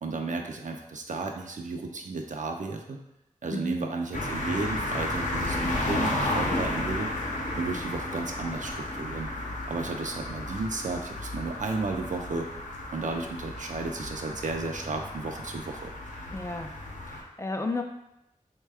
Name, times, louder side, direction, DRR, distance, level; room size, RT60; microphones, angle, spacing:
voice 1, 0.0-3.0 3.4-7.1 7.6-9.3 9.7-12.5 12.9-15.9, right 3 dB, 70° right, 3 dB, 0.4 m, -33 dB
voice 2, 3.5-3.9 16.3-16.7 17.1-17.8, left 2 dB, 20° left, 4 dB, 0.3 m, -33 dB
sound 1, 4.1-17.2, left 1 dB, 70° left, 0.6 m, -33 dB
3.4 x 2.2 x 3.4 m, 0.86 s
wide cardioid pair, 55°, 13 cm